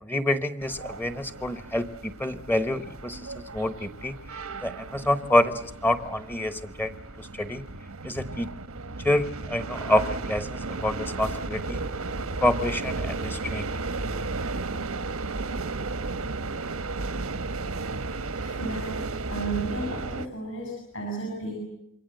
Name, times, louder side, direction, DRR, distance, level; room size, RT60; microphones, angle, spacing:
voice 1, 0.0-4.1 4.6-6.9 7.2-7.6 8.0-8.5 9.0-11.8 12.4-13.7, left 1 dB, 10° left, 10 dB, 1.1 m, -27 dB
sound 1, 0.6-20.3, right 3 dB, 85° right, 1.3 m, -34 dB
voice 2, 18.3-19.0 19.3-21.6, right 2 dB, 60° left, 2 dB, 7.9 m, -33 dB
27.5 x 23.5 x 7.9 m, 0.82 s
head